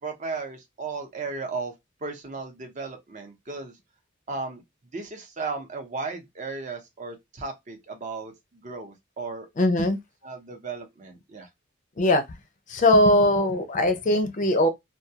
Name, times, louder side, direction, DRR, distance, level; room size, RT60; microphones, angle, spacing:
voice 1, 0.0-1.7 2.0-3.7 4.3-4.6 4.9-9.5 10.2-11.5, right 4 dB, 40° right, 0.7 m, -35 dB
voice 2, 9.6-10.0 12.0-12.2 12.7-14.7, left 1 dB, 40° left, 0.5 m, -20 dB
2.3 x 2.2 x 2.7 m
head